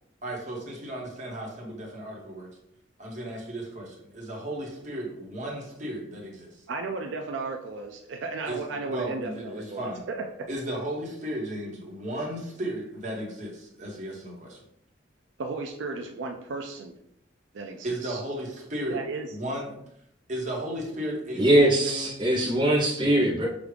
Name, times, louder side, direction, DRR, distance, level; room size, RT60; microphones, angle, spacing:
voice 1, 0.2-2.5 3.0-6.5 8.5-8.6 8.8-10.0 10.5-14.6 17.8-19.0 19.3-19.7 20.3-22.1, right 1 dB, 40° right, -2 dB, 1.2 m, -34 dB
voice 2, 6.7-10.5 15.4-16.9 17.5-18.2 18.9-19.3, right 3 dB, 75° right, 3 dB, 0.4 m, -35 dB
voice 3, 21.4-23.5, right 1 dB, 25° right, -3 dB, 0.7 m, -21 dB
6.2 x 2.4 x 3.3 m, 0.74 s
head